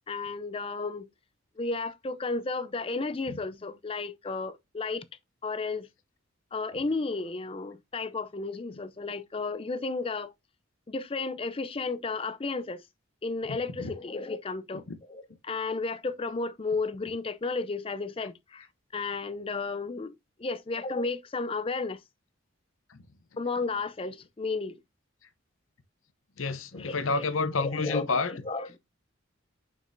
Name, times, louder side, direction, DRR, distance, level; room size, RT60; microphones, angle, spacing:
voice 1, 0.1-1.1 1.6-5.0 5.4-5.9 6.5-10.3 10.9-12.8 13.2-18.7 18.9-20.1 20.4-22.0 23.4-24.8 26.7-27.2 27.6-28.8, left 3 dB, 25° left, 0.5 m, -33 dB
voice 2, 26.4-28.3, left 4 dB, 75° left, 0.8 m, -29 dB
6.5 x 6.1 x 2.6 m
head